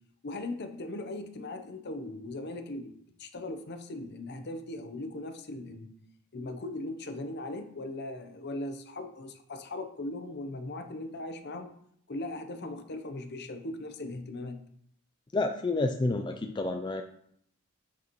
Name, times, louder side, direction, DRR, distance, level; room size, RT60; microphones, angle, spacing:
voice 1, 0.2-2.9 3.2-5.9 6.3-11.7 12.1-14.6, left 2 dB, 50° left, 8 dB, 0.8 m, -39 dB
voice 2, 15.3-17.0, left 2 dB, 20° left, 5 dB, 0.4 m, -29 dB
8.4 x 6.9 x 3.1 m, 0.68 s
head